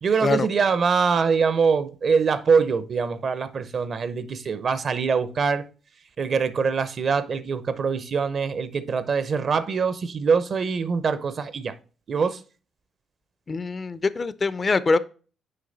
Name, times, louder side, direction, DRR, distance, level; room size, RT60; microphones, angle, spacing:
voice 1, 0.0-5.6 6.2-11.7 12.1-12.4, right 5 dB, 50° right, 0.6 m, -23 dB
voice 2, 13.5-15.0, left 3 dB, 35° left, 0.4 m, -23 dB
6.7 x 4.6 x 3.9 m
cardioid pair, 90°, 0 cm